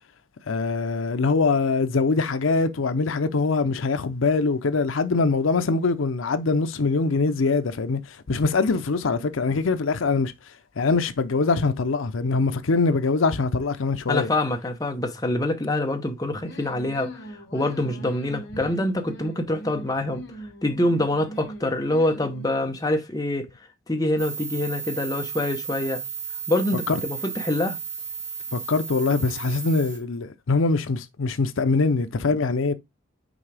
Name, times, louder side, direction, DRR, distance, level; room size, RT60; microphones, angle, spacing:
voice 1, 0.5-10.3 10.8-14.3 26.9-27.0 28.5-32.7, left 4 dB, 75° left, 0.6 m, -23 dB
voice 2, 14.1-17.2 17.5-20.2 20.6-23.5 23.9-26.0 26.5-27.8, left 1 dB, 20° left, 0.9 m, -25 dB
sound 1, 16.4-22.8, right 1 dB, 60° left, 2.3 m, -41 dB
sound 2, 24.2-30.0, right 6 dB, 15° right, 1.6 m, -34 dB
6.2 x 4.6 x 3.3 m
head